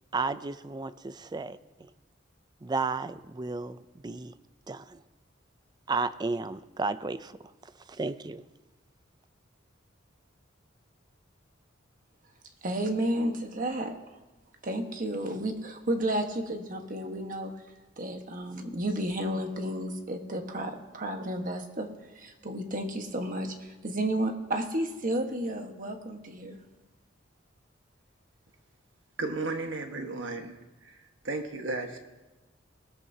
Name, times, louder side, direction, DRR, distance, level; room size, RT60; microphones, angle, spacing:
voice 1, 0.1-1.9 2.6-3.8 4.0-4.4 4.7-5.0 5.9-7.4 7.9-8.4, right 3 dB, 20° right, 14 dB, 0.4 m, -33 dB
voice 2, 12.6-13.9 14.6-17.5 18.0-21.9 22.1-26.6, right 1 dB, 45° right, 4 dB, 1.3 m, -32 dB
voice 3, 29.2-31.0 31.2-32.0, right 3 dB, 65° right, 4 dB, 1.4 m, -34 dB
20.0 x 13.5 x 2.8 m, 1.1 s
head